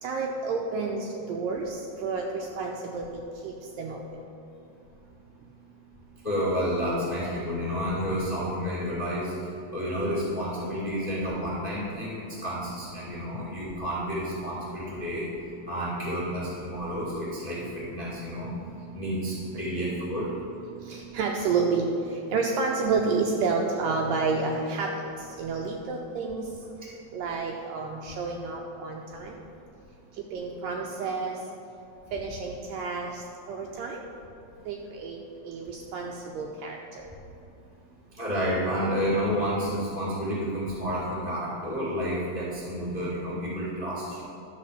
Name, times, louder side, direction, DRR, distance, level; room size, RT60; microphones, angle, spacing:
voice 1, 0.0-3.1 3.4-4.0 20.9-21.9 22.3-24.9 25.4-26.5 27.1-29.3 30.3-31.4 32.1-33.1 33.5-34.0 34.7-35.2 35.4-36.8, right 4 dB, 90° right, 0 dB, 1.9 m, -30 dB
voice 2, 6.2-9.3 9.7-12.1 12.4-15.3 15.7-18.5 18.9-20.2 38.1-44.2, equal, 60° left, -8 dB, 0.4 m, -30 dB
11.5 x 4.3 x 6.5 m, 2.7 s
omnidirectional pair, 4.6 m